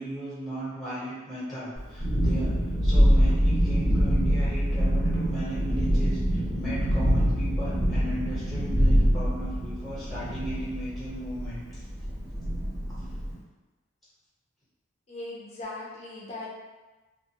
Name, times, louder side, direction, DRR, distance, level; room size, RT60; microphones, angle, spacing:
voice 1, 0.0-11.8 12.9-13.1, right 1 dB, ahead, -11 dB, 1.0 m, -36 dB
Thunderstorm, 1.8-13.3, equal, 40° right, 0.8 m, -25 dB
voice 2, 15.1-16.5, left 2 dB, 35° left, -5 dB, 0.4 m, -39 dB
2.4 x 2.2 x 2.8 m, 1.2 s
head